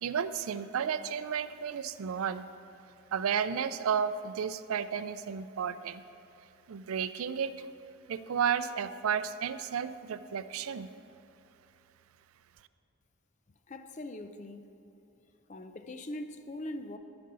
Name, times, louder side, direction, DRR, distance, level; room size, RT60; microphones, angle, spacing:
voice 1, 0.0-2.5 3.1-6.0 6.7-7.7 8.1-10.9, right 7 dB, 75° right, 0.4 m, -32 dB
voice 2, 13.7-14.8 15.5-17.0, left 1 dB, 35° left, 0.5 m, -41 dB
14.0 x 5.2 x 6.8 m
head